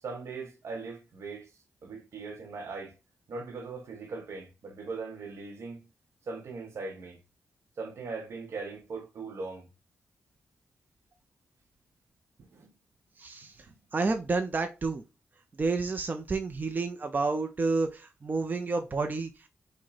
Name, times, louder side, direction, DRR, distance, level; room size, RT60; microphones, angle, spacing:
voice 1, 0.0-1.5 1.8-3.0 3.3-5.9 6.2-7.2 7.8-9.7 12.4-12.7 13.6-13.7, right 4 dB, 70° right, 1.0 m, -40 dB
voice 2, 13.2-13.6 13.9-15.0 15.6-19.5, right 3 dB, 40° right, 0.5 m, -30 dB
4.7 x 2.2 x 4.0 m
supercardioid pair, 50°, 5 cm